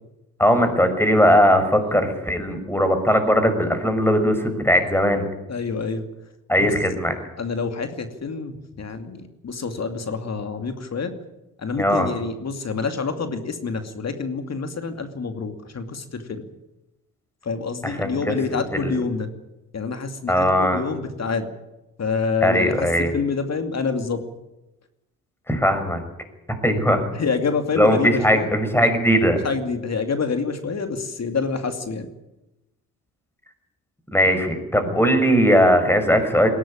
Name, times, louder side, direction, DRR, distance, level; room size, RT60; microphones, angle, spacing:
voice 1, 0.4-5.3 6.5-7.1 11.8-12.1 17.8-18.4 18.8-18.9 20.3-20.8 22.4-23.1 25.5-26.0 26.6-27.1 27.8-29.4 34.1-36.5, equal, 5° left, 8 dB, 6.0 m, -19 dB
voice 2, 5.5-6.0 6.6-6.7 7.4-11.1 11.6-16.4 17.4-19.3 19.7-21.5 22.0-24.2 27.1-28.5 28.8-28.9 29.4-32.1, left 4 dB, 45° left, 7 dB, 2.6 m, -27 dB
20.5 x 17.5 x 8.9 m, 0.96 s
supercardioid pair, 55°, 38 cm